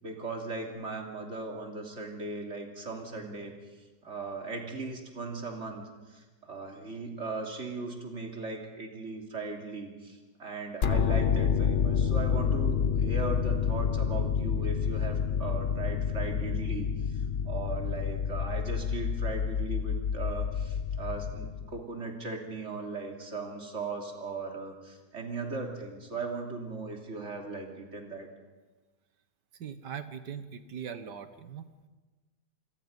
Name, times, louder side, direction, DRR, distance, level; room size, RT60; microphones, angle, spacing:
voice 1, 0.0-3.5 4.0-28.3 30.8-31.0, right 3 dB, 40° right, 2 dB, 3.2 m, -38 dB
sound 1, 10.8-21.8, left 7 dB, 45° left, 0.9 m, -28 dB
voice 2, 29.5-31.9, right 7 dB, 75° right, 11 dB, 1.9 m, -41 dB
28.0 x 22.0 x 5.4 m, 1.2 s
omnidirectional pair, 1.8 m